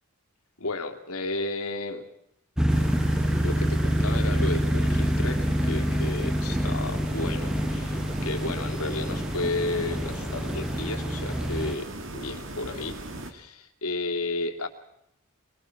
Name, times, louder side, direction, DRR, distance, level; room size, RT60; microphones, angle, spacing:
voice 1, 0.6-2.1 2.8-2.9 3.4-13.0 13.2-14.7, left 2 dB, 80° left, 4 dB, 2.8 m, -33 dB
sound 1, 2.6-11.8, equal, 5° right, 0.9 m, -26 dB
sound 2, 2.7-13.3, right 1 dB, 60° right, 2.8 m, -38 dB
25.0 x 21.5 x 6.0 m, 0.79 s
head